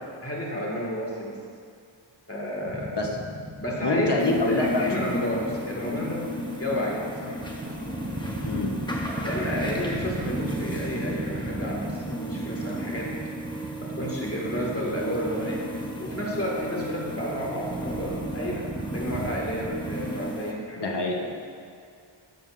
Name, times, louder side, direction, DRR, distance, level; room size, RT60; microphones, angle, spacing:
voice 1, 0.2-1.4 2.3-2.9 3.6-4.1 4.5-6.3 6.6-7.4 9.2-13.1 13.8-15.6 16.0-18.7 18.9-20.9, equal, 30° left, -4 dB, 1.9 m, -31 dB
sound 1, 2.6-20.2, right 2 dB, 20° right, 0.6 m, -36 dB
voice 2, 3.8-5.2 8.4-8.7 20.8-21.3, left 2 dB, 60° left, 0 dB, 1.1 m, -25 dB
sound 2, 4.2-20.5, equal, 10° left, 1.0 m, -35 dB
12.5 x 7.1 x 2.6 m, 2.3 s
wide cardioid pair, 65°, 47 cm